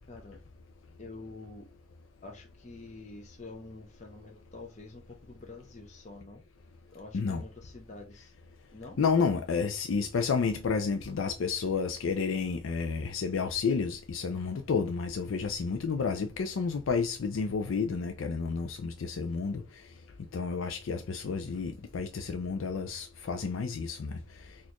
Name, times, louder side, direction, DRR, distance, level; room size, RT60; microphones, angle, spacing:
voice 1, 0.1-0.4 1.0-1.7 2.2-6.4 6.9-8.3 8.7-9.0, left 3 dB, 35° left, 0.6 m, -47 dB
voice 2, 9.0-19.6 20.3-24.1, left 5 dB, 80° left, 0.4 m, -30 dB
4.1 x 2.5 x 2.9 m
head